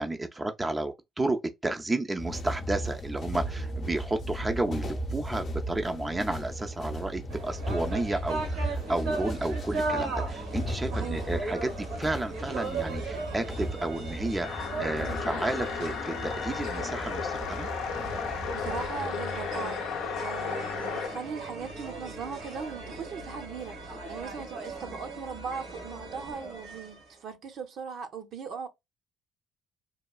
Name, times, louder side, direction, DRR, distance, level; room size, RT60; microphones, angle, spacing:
voice 1, 0.0-17.7, right 2 dB, 15° right, 0.4 m, -32 dB
sound 1, 2.2-18.9, equal, 45° left, 0.7 m, -36 dB
sound 2, 7.3-27.1, right 3 dB, 90° right, 1.2 m, -38 dB
voice 2, 10.9-11.3 18.5-28.7, right 5 dB, 60° right, 0.6 m, -39 dB
sound 3, 14.4-21.2, left 6 dB, 85° left, 0.5 m, -34 dB
3.0 x 2.2 x 2.3 m
cardioid pair, 95°, 0 cm